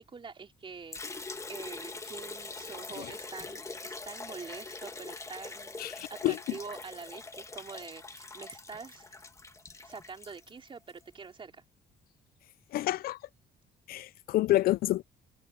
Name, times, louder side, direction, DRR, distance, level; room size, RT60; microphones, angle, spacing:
voice 1, 0.0-9.2 9.8-11.6, right 5 dB, 30° right, 3.9 m, -46 dB
Liquid, 0.9-11.0, left 3 dB, 15° left, 1.4 m, -43 dB
voice 2, 5.8-6.4 12.7-13.2 13.9-15.0, left 15 dB, 60° left, 0.4 m, -28 dB
cardioid pair, 110°, 17 cm